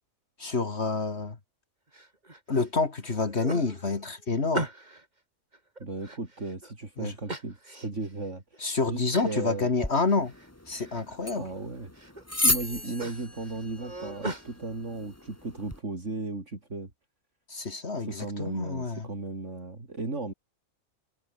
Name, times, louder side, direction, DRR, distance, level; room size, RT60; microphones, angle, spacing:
voice 1, 0.4-1.4 2.5-4.7 7.0-7.1 8.6-10.3 10.7-11.5 17.5-19.1, left 3 dB, 50° left, 2.3 m, -28 dB
sound 1, 1.9-2.7 3.1-5.1 5.5-6.7 7.3-8.1 8.5-8.6 9.1-9.4 9.8-10.5 10.8-11.3 11.8-12.2 12.6-14.5, right 2 dB, 30° right, 3.5 m, -39 dB
voice 2, 5.8-8.4 8.9-9.7 11.3-11.9 12.4-16.9 18.0-20.3, right 3 dB, 60° right, 3.9 m, -36 dB
sound 2, 9.8-15.8, left 1 dB, 10° left, 1.7 m, -34 dB
omnidirectional pair, 1.4 m